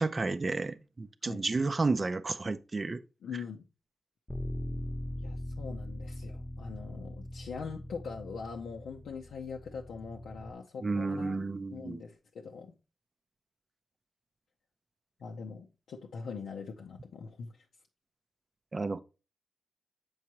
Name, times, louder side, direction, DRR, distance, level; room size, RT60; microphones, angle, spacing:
voice 1, 0.0-3.0 10.8-12.0 18.7-19.0, right 3 dB, 40° right, 0.4 m, -31 dB
voice 2, 3.2-3.7 5.2-11.4 11.7-12.7 15.2-17.5, left 5 dB, 80° left, 0.5 m, -42 dB
Bass guitar, 4.3-10.5, left 1 dB, 20° left, 0.8 m, -41 dB
7.3 x 4.7 x 2.9 m
supercardioid pair, 50°, 0 cm